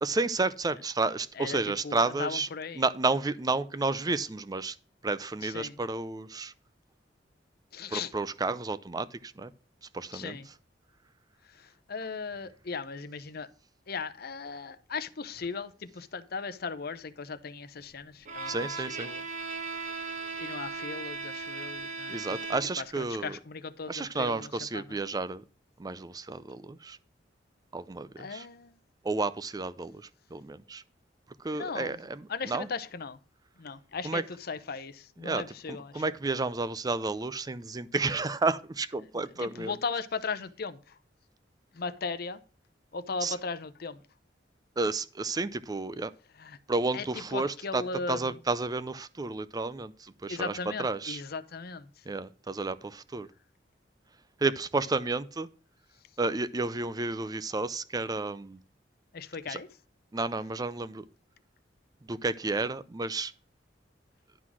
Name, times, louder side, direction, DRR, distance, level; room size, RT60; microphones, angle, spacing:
voice 1, 0.0-2.5 2.8-4.8 5.0-6.5 7.9-9.5 9.9-10.4 18.5-19.1 22.1-23.4 23.9-25.4 25.8-27.0 27.7-28.5 29.0-30.8 31.4-32.7 34.0-34.2 35.2-35.4 35.7-39.7 43.2-43.3 44.8-46.1 46.7-47.8 48.1-51.2 52.1-53.3 54.4-55.5 56.2-58.6 59.5-59.6 60.1-61.1 62.0-63.3, right 3 dB, 20° right, 0.5 m, -31 dB
voice 2, 1.4-2.8 5.4-5.8 7.7-8.1 10.1-10.5 11.4-13.5 13.9-18.7 19.0-19.2 19.6-19.9 20.4-22.4 22.8-25.0 28.2-28.8 31.5-32.0 32.3-33.2 33.6-36.0 39.4-41.0 41.7-42.4 42.9-44.0 46.4-46.6 46.9-48.4 50.3-52.0 59.1-59.7, left 4 dB, 55° left, 0.7 m, -37 dB
Bowed string instrument, 18.3-22.9, right 4 dB, 45° right, 1.2 m, -37 dB
11.5 x 4.0 x 6.0 m
head